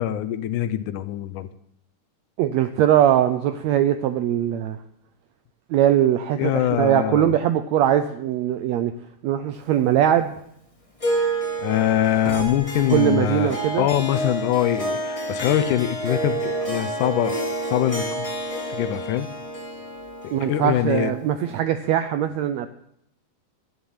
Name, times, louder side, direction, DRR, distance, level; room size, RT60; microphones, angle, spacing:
voice 1, 0.0-1.5 6.4-7.3 11.6-17.4 17.7-18.3 18.7-19.3 20.2-21.2, left 12 dB, 80° left, 13 dB, 2.1 m, -23 dB
voice 2, 2.4-4.8 5.7-8.9 9.2-10.3 12.9-13.9 20.3-22.7, right 11 dB, 80° right, 10 dB, 1.5 m, -21 dB
sound 1, 8.9-9.1 9.7-9.8 12.2-13.7 14.1-14.2, right 2 dB, 60° right, 5.5 m, -38 dB
Harp, 11.0-21.6, right 1 dB, 20° left, 1.0 m, -29 dB
11.5 x 7.2 x 8.8 m, 0.74 s
omnidirectional pair, 3.7 m